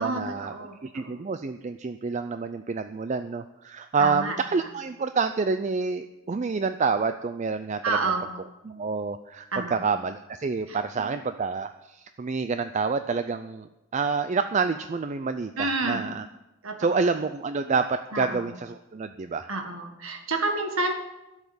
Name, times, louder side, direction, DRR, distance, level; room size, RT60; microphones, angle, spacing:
voice 1, 0.0-0.5 0.8-8.1 8.6-16.3 16.8-19.5, right 4 dB, 35° right, 10 dB, 0.4 m, -28 dB
voice 2, 4.0-4.3 7.8-8.2 9.5-9.7 10.7-10.8 15.6-16.0 16.6-16.8 18.1-18.5 19.5-20.9, right 3 dB, 80° right, 4 dB, 1.7 m, -28 dB
11.5 x 7.3 x 8.6 m, 0.98 s
head